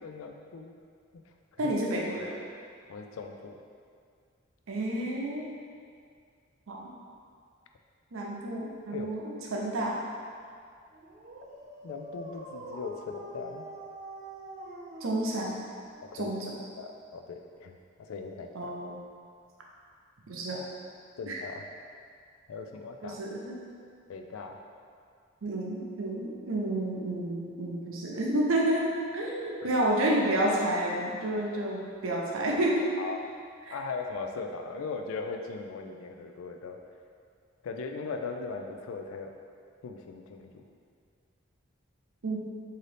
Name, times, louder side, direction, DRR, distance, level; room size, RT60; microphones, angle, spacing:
voice 1, 0.0-0.7 1.5-1.7 2.9-3.6 8.9-9.1 11.8-13.7 16.1-16.3 16.8-18.7 21.2-21.7 22.5-23.2 24.1-24.6 29.6-29.7 33.0-33.2 33.7-36.8 37.6-39.3 39.8-40.6, left 4 dB, 90° left, 4 dB, 0.4 m, -39 dB
voice 2, 1.6-2.4 4.7-5.5 6.7-6.9 8.1-10.0 15.0-15.5 16.1-16.5 18.5-19.0 20.3-20.6 21.3-21.4 23.0-23.6 25.4-32.9 33.7-33.8 42.2-42.4, right 1 dB, 90° right, -2 dB, 0.6 m, -30 dB
Dog, 10.9-16.6, right 1 dB, 35° right, 0.4 m, -45 dB
3.9 x 2.7 x 3.3 m, 2.2 s
head